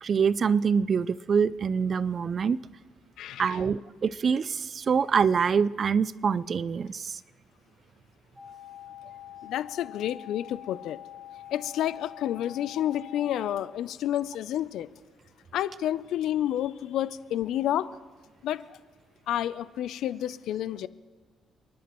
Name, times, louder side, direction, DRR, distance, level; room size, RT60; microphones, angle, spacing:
voice 1, 0.0-2.6 3.4-7.2, right 6 dB, 50° right, 19 dB, 0.4 m, -25 dB
voice 2, 3.2-3.6 9.4-11.0 11.5-14.9 15.5-17.9 18.4-18.8 19.3-20.9, left 11 dB, 80° left, 16 dB, 0.5 m, -30 dB
sound 1, 8.4-13.5, left 12 dB, 5° right, 3.0 m, -45 dB
30.0 x 11.5 x 3.1 m, 1.5 s
cardioid pair, 90°, 0 cm